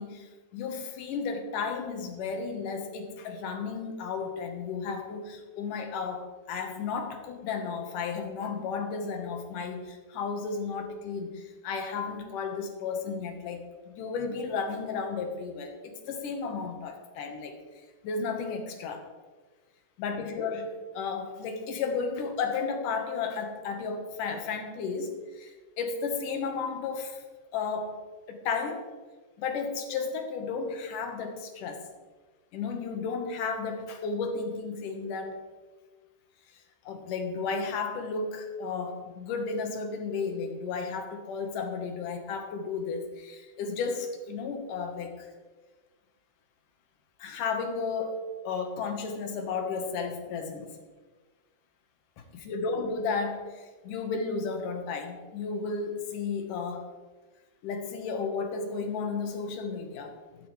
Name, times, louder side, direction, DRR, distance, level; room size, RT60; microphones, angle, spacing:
voice 1, 0.0-17.6 18.0-19.0 20.0-27.2 27.5-28.0 28.3-28.9 29.4-31.8 32.5-35.4 36.8-45.3 47.2-50.8 52.2-56.9 57.6-60.2, left 5 dB, 80° left, 5 dB, 2.8 m, -33 dB
13.5 x 12.0 x 3.2 m, 1.4 s
omnidirectional pair, 3.7 m